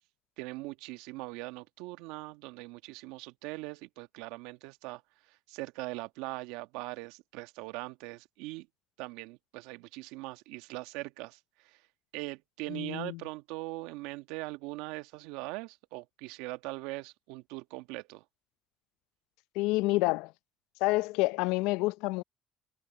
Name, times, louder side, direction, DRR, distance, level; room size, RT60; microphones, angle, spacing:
voice 1, 0.4-5.0 5.3-8.7 9.0-11.8 12.1-18.2, right 22 dB, 80° right, 1.4 m, -41 dB
voice 2, 12.7-13.2 19.6-20.3 20.8-22.2, left 22 dB, 80° left, 0.5 m, -28 dB
hypercardioid pair, 60°, 0 cm